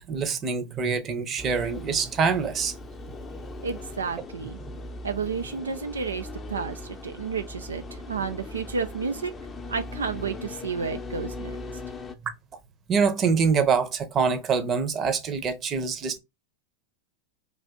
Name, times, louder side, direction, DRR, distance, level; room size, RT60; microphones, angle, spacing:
voice 1, 0.0-2.7 12.9-16.2, right 5 dB, 35° right, 0.8 m, -25 dB
sound 1, 1.4-12.2, left 2 dB, 20° left, 0.6 m, -39 dB
voice 2, 3.6-4.6 5.0-9.3 9.7-11.8, right 5 dB, 85° right, 0.4 m, -31 dB
3.4 x 2.6 x 3.6 m
hypercardioid pair, 95°, 0 cm